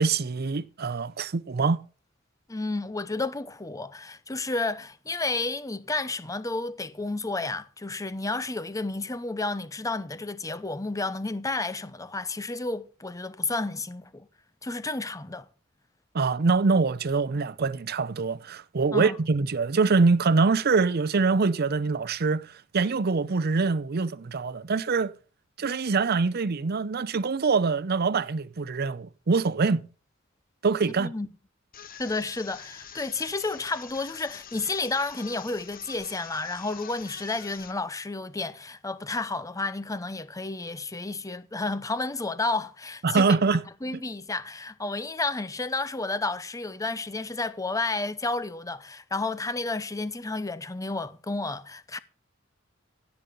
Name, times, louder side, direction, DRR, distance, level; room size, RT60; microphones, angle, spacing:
voice 1, 0.0-1.8 16.1-25.1 25.6-29.8 30.6-31.1 43.0-43.6, right 4 dB, 50° right, 0.6 m, -24 dB
voice 2, 2.5-14.3 14.6-15.5 18.9-19.2 31.0-31.3 32.0-43.4 43.8-52.0, left 3 dB, 15° left, 0.7 m, -31 dB
sound 1, 31.7-37.8, left 8 dB, 45° left, 0.9 m, -45 dB
16.0 x 5.4 x 6.8 m
head